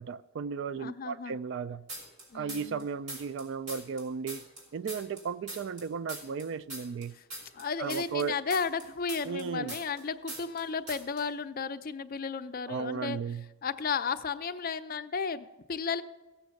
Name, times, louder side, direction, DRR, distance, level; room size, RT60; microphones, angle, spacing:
voice 1, 0.0-1.9 2.3-4.4 4.7-7.1 7.8-8.4 9.2-9.8 12.7-13.4, right 6 dB, 55° right, 0.3 m, -35 dB
voice 2, 0.8-1.4 2.3-2.9 7.2-7.3 7.5-13.2 13.6-16.0, left 5 dB, 40° left, 0.5 m, -34 dB
sound 1, 1.9-2.8 3.1-5.8 6.1-10.0 10.3-10.6 10.9-11.2, right 1 dB, 70° right, 4.5 m, -41 dB
16.0 x 7.0 x 6.4 m
head